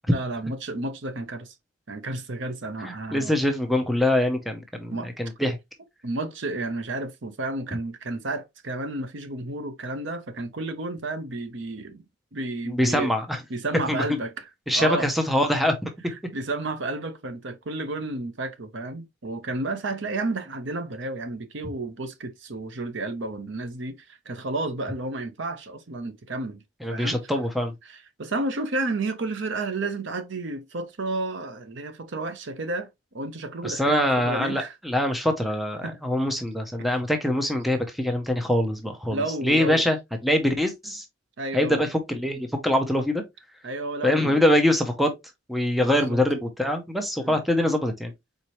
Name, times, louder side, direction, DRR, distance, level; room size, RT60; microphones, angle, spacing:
voice 1, 0.1-1.5 1.9-3.4 4.9-5.1 6.0-12.0 12.3-13.1 13.5-14.5 14.7-15.1 16.0-26.6 26.9-27.3 27.8-34.8 35.8-36.0 39.1-39.9 41.4-41.8 43.6-44.4 45.8-46.2 47.2-47.4, right 2 dB, 60° right, 0.8 m, -31 dB
voice 2, 2.8-5.6 12.7-13.4 13.9-14.0 14.7-15.9 26.8-27.7 33.6-40.0 40.2-41.0 41.5-43.2 44.0-45.1 45.5-48.1, left 1 dB, ahead, 0.6 m, -24 dB
4.5 x 4.0 x 3.0 m
head